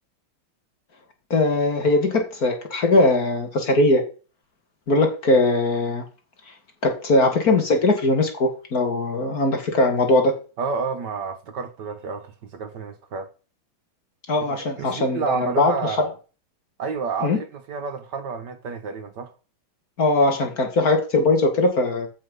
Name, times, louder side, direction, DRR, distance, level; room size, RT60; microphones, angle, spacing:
voice 1, 1.3-4.0 4.9-6.0 6.8-10.3 14.3-16.1 17.2-17.4 20.0-22.1, left 2 dB, 45° left, 2.5 m, -20 dB
voice 2, 10.6-13.3 14.5-16.1 16.8-19.3, right 5 dB, 60° right, 1.6 m, -30 dB
14.5 x 5.3 x 5.4 m
omnidirectional pair, 2.2 m